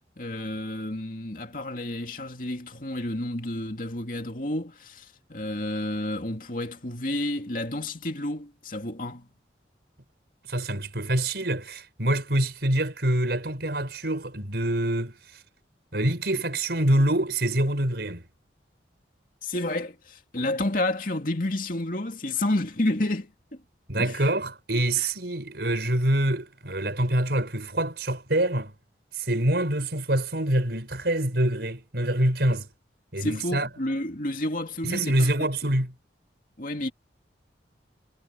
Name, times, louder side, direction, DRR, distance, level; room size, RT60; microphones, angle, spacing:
voice 1, 0.2-9.3 19.4-23.6 24.0-24.3 25.0-25.1 33.2-35.3 36.6-36.9, left 1 dB, 50° left, 2.6 m, -30 dB
voice 2, 10.5-15.1 15.9-18.2 23.9-28.7 29.2-32.7 33.1-33.7 34.8-35.9, right 1 dB, 65° right, 4.8 m, -25 dB
head